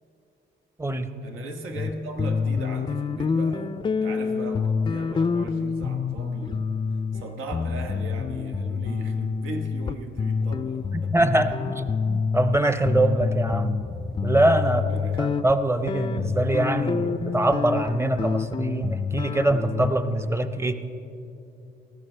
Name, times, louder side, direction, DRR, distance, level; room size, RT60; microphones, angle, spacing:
voice 1, 1.2-6.7 7.1-11.6 14.6-15.5, right 2 dB, 90° right, 4 dB, 1.2 m, -37 dB
sound 1, 1.8-1.9 2.2-12.6 12.9-19.9, left 5 dB, 25° left, 0.3 m, -27 dB
voice 2, 11.1-13.8 14.2-14.8 15.2-20.8, right 1 dB, 15° right, 10 dB, 0.7 m, -23 dB
19.0 x 14.0 x 3.3 m, 2.7 s
cardioid pair, 90°, 20 cm